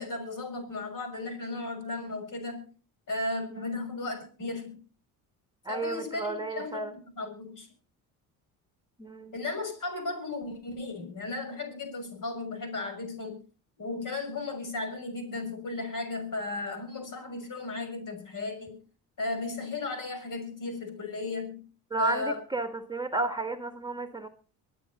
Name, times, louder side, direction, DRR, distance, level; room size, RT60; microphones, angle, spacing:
voice 1, 0.0-2.7 3.1-4.8 5.7-7.7 9.3-13.4 13.8-18.8 19.2-21.7 22.0-22.4, left 3 dB, 50° left, 6 dB, 6.3 m, -35 dB
voice 2, 5.6-6.9 9.0-9.3 21.9-24.3, right 3 dB, 10° right, 8 dB, 1.5 m, -32 dB
24.0 x 9.3 x 4.2 m, 0.38 s
supercardioid pair, 75°, 40 cm